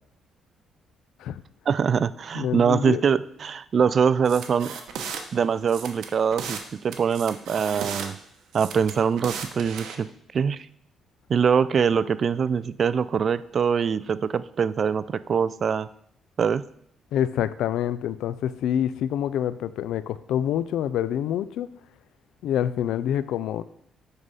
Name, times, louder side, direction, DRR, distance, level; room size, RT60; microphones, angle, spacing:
voice 1, 1.7-4.8 5.3-8.2 8.5-10.1 10.3-10.7 11.3-15.9 16.4-16.6, right 6 dB, 50° right, 17 dB, 0.3 m, -23 dB
voice 2, 2.3-3.1 17.1-21.7 22.4-23.6, left 10 dB, 85° left, 15 dB, 0.3 m, -26 dB
sound 1, 4.2-5.2 5.7-6.6 6.9-8.1 8.5-9.9, right 6 dB, 80° right, 0.9 m, -35 dB
8.0 x 3.8 x 5.5 m, 0.71 s
cardioid pair, 90°, 0 cm